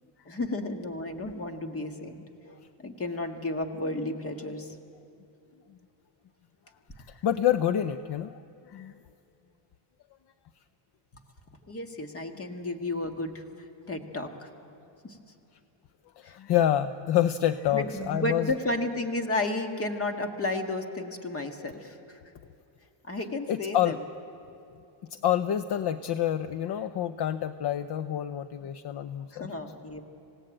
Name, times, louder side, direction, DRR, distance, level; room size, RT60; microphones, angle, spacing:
voice 1, 0.3-4.8 11.7-13.4 13.9-14.5 15.0-15.2 16.2-16.4 17.7-22.2 23.0-24.0 29.3-30.0, left 2 dB, 30° left, 5 dB, 1.8 m, -33 dB
voice 2, 7.1-8.4 8.7-8.9 16.2-18.5 23.5-24.0 25.1-29.5, left 11 dB, 55° left, 12 dB, 0.7 m, -27 dB
27.5 x 17.5 x 8.9 m, 2.7 s
cardioid pair, 140°, 48 cm